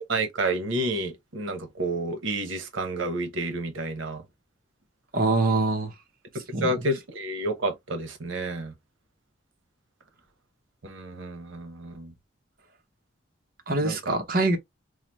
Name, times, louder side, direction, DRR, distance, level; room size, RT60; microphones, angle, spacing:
voice 1, 0.1-4.2 6.6-8.7 10.8-12.1 13.8-14.2, right 2 dB, 85° right, 0.8 m, -30 dB
voice 2, 5.1-5.9 6.5-6.8 13.7-14.6, right 2 dB, 45° right, 0.8 m, -24 dB
4.8 x 2.0 x 2.9 m
head